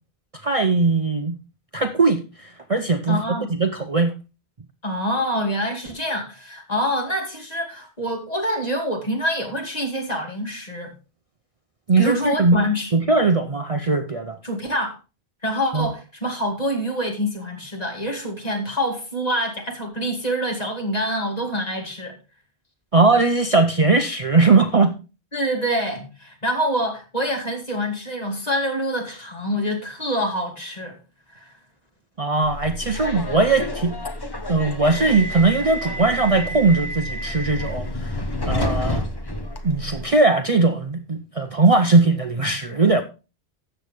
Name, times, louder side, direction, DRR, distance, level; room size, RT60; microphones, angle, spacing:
voice 1, 0.3-1.3 1.7-3.2 3.5-4.1 11.9-12.6 12.9-14.4 15.7-15.9 22.9-24.9 32.2-33.9 34.5-39.0 39.6-43.0, right 3 dB, 40° right, 0.7 m, -19 dB
voice 2, 3.1-3.5 4.8-10.9 12.0-12.9 14.4-14.9 15.4-22.2 25.3-31.0 31.3-31.5, equal, 40° left, 2.6 m, -26 dB
Subway metro underground, 32.4-40.0, left 1 dB, 25° left, 1.1 m, -29 dB
13.0 x 7.8 x 3.4 m
omnidirectional pair, 1.1 m